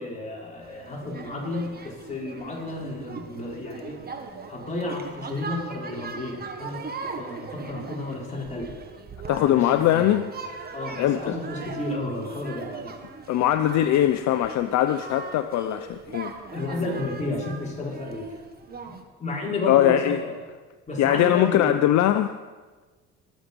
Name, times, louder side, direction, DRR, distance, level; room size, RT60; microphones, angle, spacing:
voice 1, 0.0-4.0 4.5-8.8 9.4-10.1 10.7-12.9 16.5-18.4 18.9-19.0 19.2-20.3 20.9-21.8, left 2 dB, 25° left, -3 dB, 4.6 m, -32 dB
sound 1, 0.6-19.0, right 4 dB, 30° right, 1.6 m, -40 dB
voice 2, 9.3-10.3 11.0-11.4 13.3-16.3 19.7-20.2 21.0-22.3, left 12 dB, 60° left, 9 dB, 0.7 m, -21 dB
21.5 x 7.3 x 5.3 m, 1.3 s
cardioid pair, 105°, 31 cm